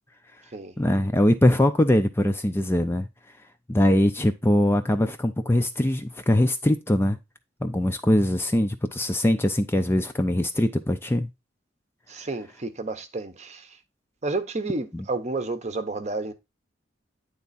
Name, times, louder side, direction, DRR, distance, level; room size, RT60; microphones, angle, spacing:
voice 1, 0.8-3.1 3.7-7.2 7.6-11.3 14.9-15.0, left 1 dB, 10° left, 0.4 m, -22 dB
voice 2, 12.1-13.6 14.2-16.3, right 3 dB, 35° right, 0.8 m, -30 dB
9.5 x 3.5 x 4.0 m
head